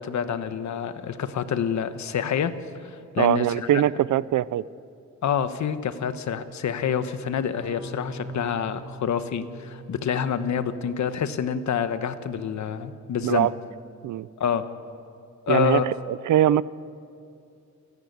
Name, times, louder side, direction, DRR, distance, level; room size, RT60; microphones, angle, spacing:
voice 1, 0.0-2.5 2.8-3.5 3.7-3.8 5.2-13.5 14.4-14.7 15.5-15.9, left 8 dB, 70° left, 10 dB, 1.2 m, -27 dB
voice 2, 3.2-4.6 13.2-13.5 14.0-14.3 15.5-16.6, right 12 dB, 85° right, 19 dB, 0.6 m, -22 dB
sound 1, 7.6-12.4, right 1 dB, 20° right, 3.1 m, -44 dB
28.5 x 11.0 x 9.5 m, 2.4 s
cardioid pair, 120°, 30 cm